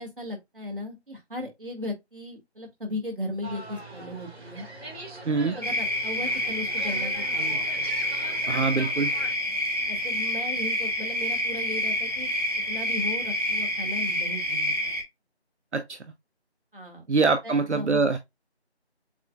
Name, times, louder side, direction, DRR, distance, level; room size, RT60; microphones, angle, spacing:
voice 1, 0.0-4.7 5.5-7.8 9.9-12.3 12.7-14.9 16.7-17.0 17.4-18.0, left 1 dB, 50° right, 2.0 m, -36 dB
sound 1, 3.4-9.3, right 2 dB, 70° right, 2.6 m, -42 dB
voice 2, 5.3-5.6 8.5-9.1 15.7-16.0 17.1-18.2, right 4 dB, 85° right, 0.8 m, -24 dB
sound 2, 5.6-15.0, left 1 dB, 35° right, 1.0 m, -28 dB
7.3 x 2.5 x 2.3 m
figure-of-eight pair, 175°, 34 cm